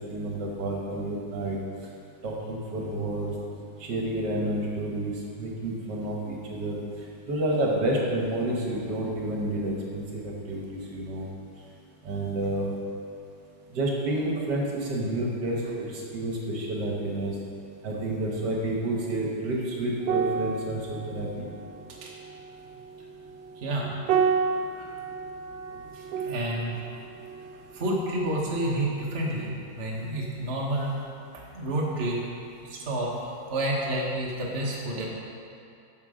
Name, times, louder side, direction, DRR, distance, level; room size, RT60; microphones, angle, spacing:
voice 1, 0.1-1.6 2.2-3.3 3.8-6.8 7.3-10.6 10.9-11.3 12.0-12.7 13.7-17.4 17.8-21.5, right 1 dB, 70° right, -2 dB, 1.8 m, -29 dB
sound 1, 20.0-28.7 29.0-29.3, right 6 dB, 90° right, 1.3 m, -32 dB
voice 2, 23.6-23.9 24.8-24.9 25.9-26.7 27.7-31.0 31.5-32.2 32.7-35.1, right 1 dB, 40° right, -4 dB, 1.4 m, -29 dB
9.0 x 6.2 x 5.0 m, 2.6 s
omnidirectional pair, 2.0 m